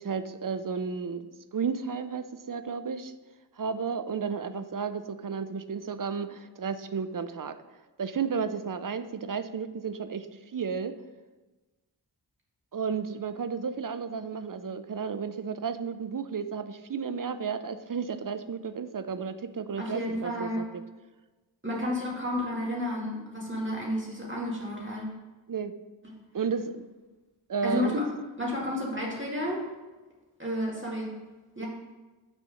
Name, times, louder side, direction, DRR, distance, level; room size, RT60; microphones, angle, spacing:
voice 1, 0.0-3.1 3.6-7.6 8.0-10.9 12.7-20.8 25.5-25.7 26.3-26.8 27.5-28.0 31.6-31.7, right 6 dB, 45° right, 11 dB, 0.5 m, -33 dB
voice 2, 19.8-20.6 21.6-25.1 27.6-28.1 28.4-29.6 30.4-31.1 31.6-31.7, left 1 dB, 25° right, -4 dB, 2.2 m, -31 dB
6.3 x 4.1 x 6.3 m, 1.2 s
wide cardioid pair, 40°, 45 cm